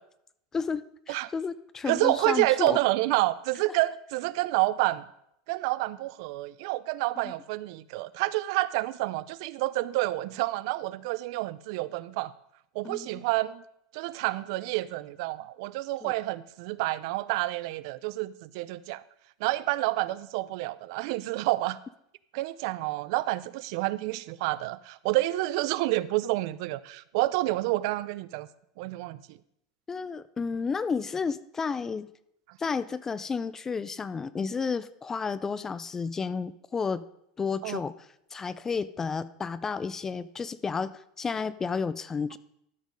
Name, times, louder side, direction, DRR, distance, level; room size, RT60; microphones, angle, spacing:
voice 1, 0.5-2.8 7.2-7.3 12.8-13.2 16.0-16.1 29.9-32.1 32.6-37.0 37.4-37.9 38.3-42.4, left 5 dB, 15° left, 16 dB, 0.3 m, -32 dB
voice 2, 1.9-5.0 5.5-12.3 12.7-13.6 13.9-19.0 19.4-21.8 22.3-28.5 28.8-29.4 37.6-37.8, right 18 dB, 60° right, 17 dB, 0.4 m, -29 dB
13.0 x 5.2 x 5.1 m, 0.76 s
supercardioid pair, 145°, 3 cm